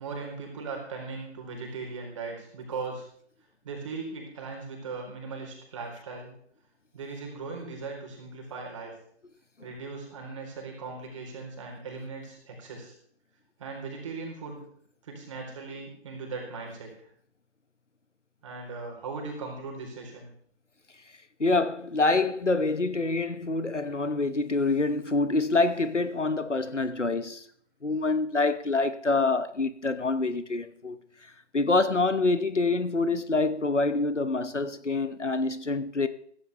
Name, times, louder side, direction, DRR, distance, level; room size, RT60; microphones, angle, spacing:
voice 1, 0.0-3.1 3.6-6.3 6.9-8.9 9.6-12.9 13.6-14.6 15.0-17.1 18.4-20.3, right 4 dB, 25° right, 4.2 m, -38 dB
voice 2, 21.4-27.4 27.8-31.0 31.5-36.1, left 3 dB, 85° left, 1.2 m, -26 dB
16.0 x 15.5 x 3.5 m
figure-of-eight pair, 150°, 35 cm